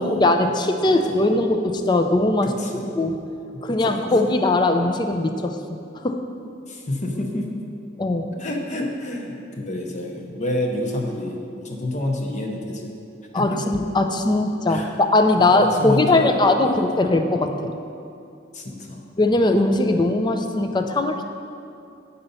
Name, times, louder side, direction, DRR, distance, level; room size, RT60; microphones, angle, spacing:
voice 1, 0.0-2.5 2.8-3.2 3.6-5.6 6.0-6.2 8.0-8.3 13.3-17.7 19.2-21.2, left 2 dB, 25° left, 6 dB, 0.4 m, -20 dB
voice 2, 0.9-1.3 2.4-2.9 3.5-4.0 6.7-7.5 8.4-12.9 13.3-13.6 14.7-15.0 15.4-16.8 18.5-19.1, left 1 dB, 40° left, 1 dB, 0.8 m, -29 dB
9.1 x 4.0 x 5.5 m, 2.6 s
head